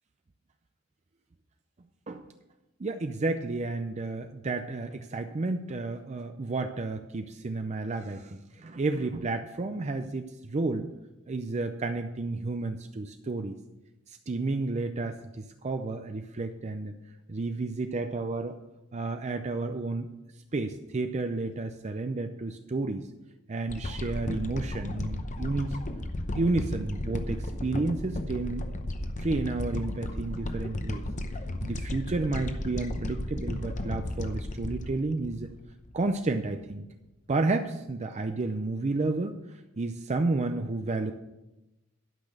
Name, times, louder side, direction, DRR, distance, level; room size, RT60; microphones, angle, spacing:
voice 1, 2.8-10.9 11.3-13.6 14.1-17.0 17.3-18.6 18.9-20.1 20.5-23.1 23.5-25.8 26.4-28.7 29.2-31.1 31.6-35.5 35.9-36.9 37.3-39.4 39.8-41.1, right 3 dB, 35° right, 7 dB, 0.5 m, -31 dB
sound 1, 23.7-36.0 36.5-36.6, left 1 dB, 35° left, 0.8 m, -34 dB
12.0 x 5.9 x 6.4 m, 0.98 s
head